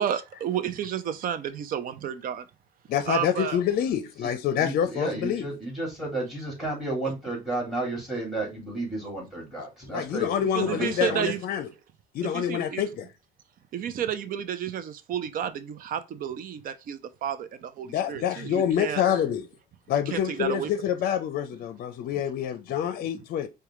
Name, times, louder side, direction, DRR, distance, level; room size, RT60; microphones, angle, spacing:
voice 1, 0.0-2.5 3.1-3.6 10.5-11.4 12.2-12.8 13.7-19.0 20.1-20.7, right 9 dB, 55° right, 0.5 m, -31 dB
voice 2, 2.9-5.5 9.9-11.7 12.1-13.1 17.8-19.5 19.9-23.5, left 9 dB, 60° left, 0.5 m, -27 dB
voice 3, 4.6-10.3 10.6-11.2, right 2 dB, ahead, 2.5 m, -32 dB
4.7 x 2.3 x 3.0 m
cardioid pair, 110°, 17 cm